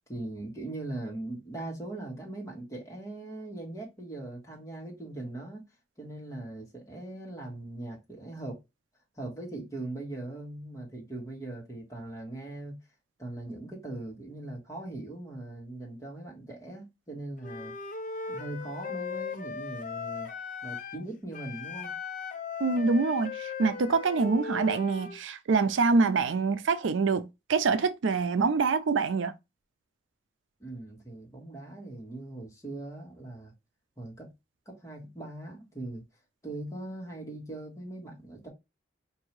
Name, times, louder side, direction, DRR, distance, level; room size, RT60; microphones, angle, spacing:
voice 1, 0.1-5.6 6.0-8.6 9.1-12.8 13.2-17.7 18.3-20.3 20.6-21.9 30.6-33.5 34.0-34.3 34.6-36.0 36.4-38.5, right 2 dB, 15° left, 1.4 m, -40 dB
Wind instrument woodwind instrument, 17.4-21.1 21.3-25.2, left 5 dB, 40° left, 0.4 m, -38 dB
voice 2, 22.6-29.3, right 4 dB, 85° right, 0.5 m, -25 dB
4.8 x 2.6 x 3.0 m
head